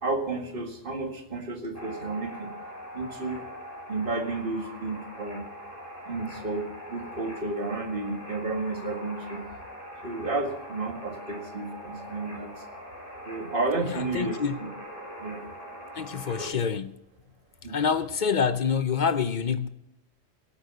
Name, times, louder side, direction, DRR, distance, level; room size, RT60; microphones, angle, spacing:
voice 1, 0.0-2.5 2.9-3.4 3.9-5.5 6.1-6.6 6.9-9.4 10.0-12.5 13.2-14.4 15.2-15.4 16.4-16.5 17.6-17.7, right 3 dB, 45° right, 2.1 m, -31 dB
sound 1, 1.7-16.5, equal, 10° left, 5.8 m, -42 dB
voice 2, 13.8-14.6 15.9-17.0 17.7-19.7, left 6 dB, 45° left, 0.7 m, -27 dB
17.0 x 8.4 x 5.4 m
omnidirectional pair, 1.3 m